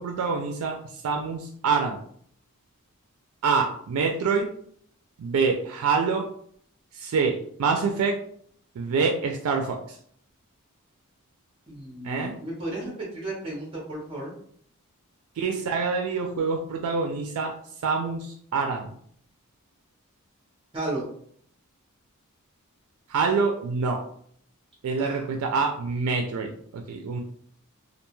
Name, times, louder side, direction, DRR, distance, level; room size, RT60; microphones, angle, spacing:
voice 1, 0.0-2.0 3.4-4.5 5.2-6.3 6.9-8.2 8.8-9.8 12.0-12.4 15.4-17.5 17.8-18.9 23.1-24.0 24.8-27.2, right 5 dB, 90° right, 3 dB, 0.3 m, -26 dB
voice 2, 11.7-14.3 20.7-21.0 25.0-25.2, right 2 dB, 25° right, -3 dB, 0.7 m, -34 dB
2.4 x 2.2 x 3.0 m, 0.62 s
head